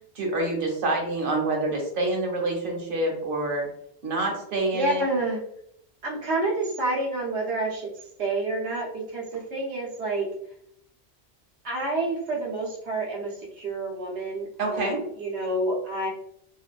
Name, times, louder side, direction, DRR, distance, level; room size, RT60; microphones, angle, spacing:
voice 1, 0.1-3.7 4.0-5.0 14.6-15.0, right 2 dB, 55° right, 0 dB, 0.9 m, -27 dB
voice 2, 4.7-5.4 6.0-7.9 8.2-10.3 11.6-16.1, right 2 dB, 85° right, -3 dB, 1.1 m, -28 dB
2.6 x 2.2 x 2.3 m, 0.70 s
omnidirectional pair, 1.1 m